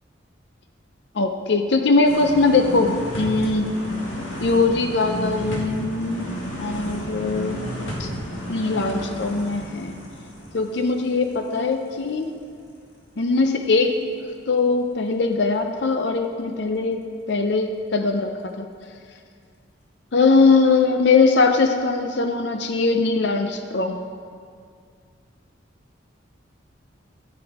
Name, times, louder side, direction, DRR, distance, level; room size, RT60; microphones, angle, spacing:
voice 1, 1.1-3.7 4.4-7.6 8.0-8.1 8.5-9.9 10.5-12.3 13.2-14.0 14.5-18.7 20.1-24.0, left 3 dB, 60° left, 5 dB, 0.5 m, -21 dB
sound 1, 2.1-11.9 12.2-12.3, equal, 80° left, 2.0 m, -32 dB
13.0 x 8.0 x 4.7 m, 2.2 s
head